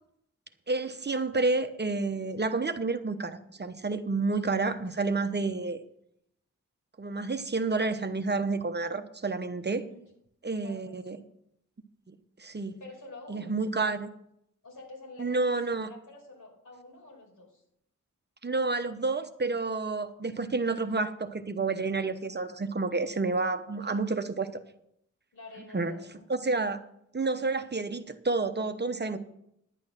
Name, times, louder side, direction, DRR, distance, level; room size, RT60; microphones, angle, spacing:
voice 1, 0.7-5.8 7.0-9.8 10.4-11.2 12.1-12.8 13.3-14.1 15.2-15.9 18.4-24.6 25.7-25.9 26.3-26.8 27.1-29.2, right 3 dB, 35° right, 8 dB, 0.9 m, -30 dB
voice 2, 10.6-11.3 12.8-13.6 14.6-17.6 23.8-24.1 25.3-26.4, left 2 dB, 75° left, -1 dB, 5.2 m, -49 dB
11.0 x 8.7 x 5.9 m, 0.75 s
cardioid pair, 65°, 31 cm